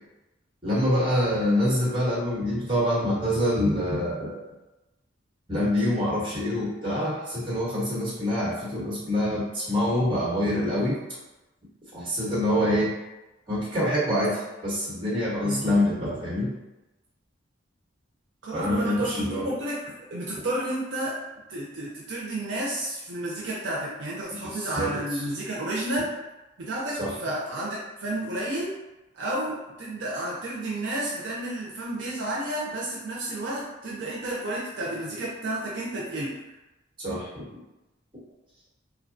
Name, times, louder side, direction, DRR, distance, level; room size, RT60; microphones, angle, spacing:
voice 1, 0.6-4.4 5.5-11.0 11.9-12.9 13.5-16.5 18.5-19.5 24.5-25.2 27.0-27.1 37.0-37.4, left 1 dB, 25° right, -7 dB, 1.0 m, -26 dB
voice 2, 18.4-21.2 21.5-26.1 26.6-28.7 29.1-36.4, right 1 dB, 65° right, -5 dB, 0.5 m, -31 dB
2.8 x 2.2 x 2.5 m, 1.0 s
head